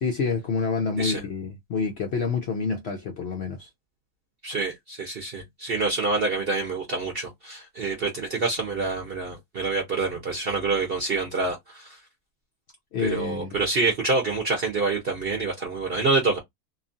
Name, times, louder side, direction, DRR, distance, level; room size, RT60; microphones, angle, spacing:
voice 1, 0.0-3.7 12.9-13.6, left 5 dB, 80° left, 0.5 m, -28 dB
voice 2, 4.4-12.0 13.0-16.4, right 3 dB, 50° right, 0.7 m, -27 dB
2.9 x 2.3 x 2.5 m
omnidirectional pair, 1.8 m